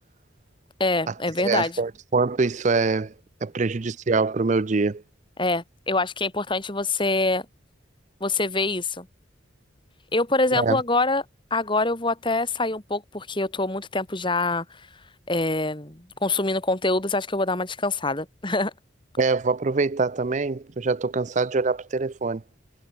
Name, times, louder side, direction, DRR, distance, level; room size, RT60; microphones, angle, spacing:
voice 1, 0.8-1.8 5.4-7.4 8.2-9.1 10.1-11.2 11.5-14.7 15.3-18.7, left 2 dB, 25° left, 2.4 m, -25 dB
voice 2, 1.4-3.1 3.4-5.0 10.5-10.8 19.2-22.4, right 4 dB, 35° right, 0.5 m, -24 dB
head